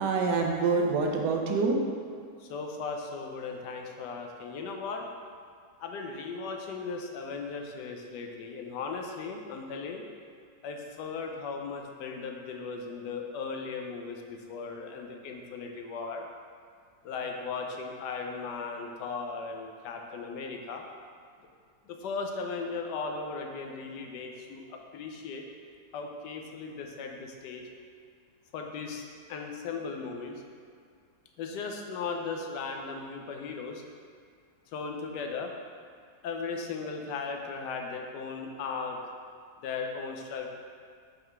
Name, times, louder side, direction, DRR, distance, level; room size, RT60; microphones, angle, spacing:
voice 1, 0.0-2.2, right 4 dB, 80° right, 1 dB, 1.2 m, -27 dB
voice 2, 2.4-5.1 5.8-10.0 10.6-16.2 17.0-20.8 21.9-25.4 25.9-27.6 28.5-30.4 31.4-33.8 34.7-35.5 36.2-39.0 39.6-40.5, left 4 dB, 80° left, 2 dB, 1.2 m, -37 dB
5.5 x 3.7 x 4.6 m, 2.2 s
omnidirectional pair, 1.9 m